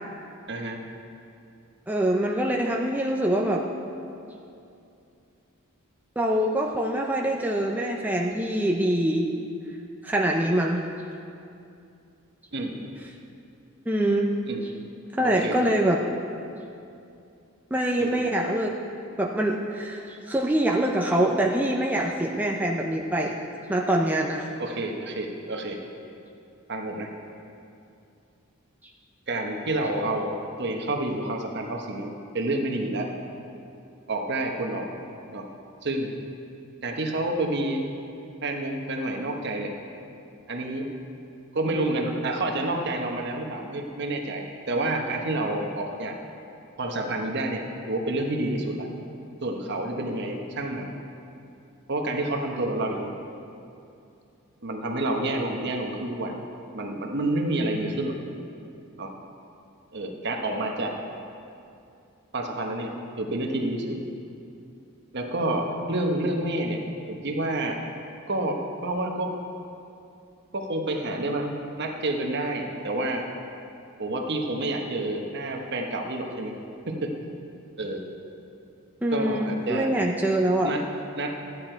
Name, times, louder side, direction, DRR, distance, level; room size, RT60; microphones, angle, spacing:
voice 1, 0.5-0.8 12.5-12.9 14.5-14.6 15.2-15.5 18.0-18.1 24.6-25.8 26.7-27.1 29.3-33.1 34.1-34.9 35.3-35.5 35.8-36.1 36.8-37.8 38.4-39.7 40.5-40.9 41.5-46.2 46.8-48.9 49.4-50.9 51.9-53.1 54.6-56.3 56.7-58.2 59.0-59.1 59.9-60.9 62.3-64.0 65.1-66.8 67.1-67.8 68.3-69.3 70.5-73.3 74.0-76.5 76.9-77.1 77.8-78.0 79.1-79.9 80.6-80.8 81.2-81.4, right 2 dB, 55° right, 2 dB, 1.1 m, -29 dB
voice 2, 1.9-3.6 6.2-9.3 10.0-10.8 13.9-14.3 15.2-16.0 17.7-18.8 19.2-23.3 23.7-24.5 79.0-80.7, right 1 dB, 10° right, -1 dB, 0.5 m, -24 dB
13.0 x 9.6 x 4.5 m, 2.6 s
head